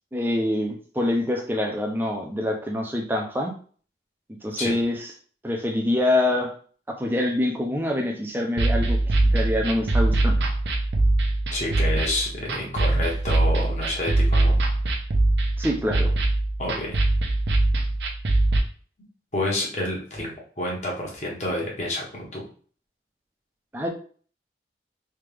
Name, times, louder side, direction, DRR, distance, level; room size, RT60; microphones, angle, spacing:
voice 1, 0.1-3.5 4.4-5.1 5.4-6.5 6.9-9.0 9.3-10.5 15.6-16.1 23.7-23.9, left 1 dB, 10° right, 1 dB, 0.5 m, -25 dB
sound 1, 8.6-18.6, right 2 dB, 75° right, 0.7 m, -22 dB
voice 2, 11.5-14.5 16.6-16.9 19.3-22.4, left 1 dB, 40° left, -2 dB, 1.2 m, -29 dB
3.4 x 2.8 x 3.3 m, 0.44 s
head